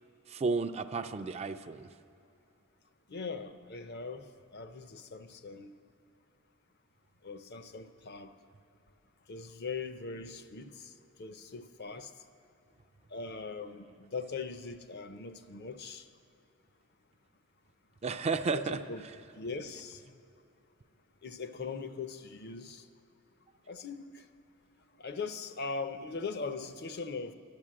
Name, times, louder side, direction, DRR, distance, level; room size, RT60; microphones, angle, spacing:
voice 1, 0.3-1.9 18.0-19.3, right 4 dB, 30° right, 0.4 m, -33 dB
voice 2, 3.1-5.7 7.2-8.3 9.3-10.9 11.2-12.1 13.1-16.1 18.5-19.0 19.3-20.2 21.2-22.9 23.7-24.3 25.0-27.3, left 4 dB, 50° left, 0.6 m, -40 dB
11.5 x 10.5 x 7.5 m
head